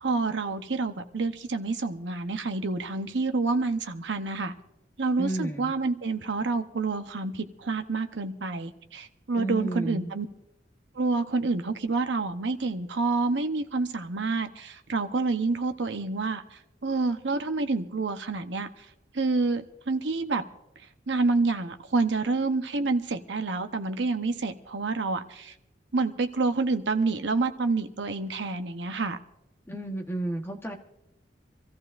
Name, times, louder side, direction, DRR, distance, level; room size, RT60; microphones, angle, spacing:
voice 1, 0.0-4.5 5.0-10.3 11.0-16.4 16.8-18.7 19.1-20.4 21.1-25.5 25.9-29.2, right 3 dB, 70° right, 0.9 m, -28 dB
voice 2, 5.2-5.7 9.3-10.1 29.7-30.8, right 1 dB, 15° left, 1.2 m, -32 dB
26.0 x 14.5 x 2.6 m
head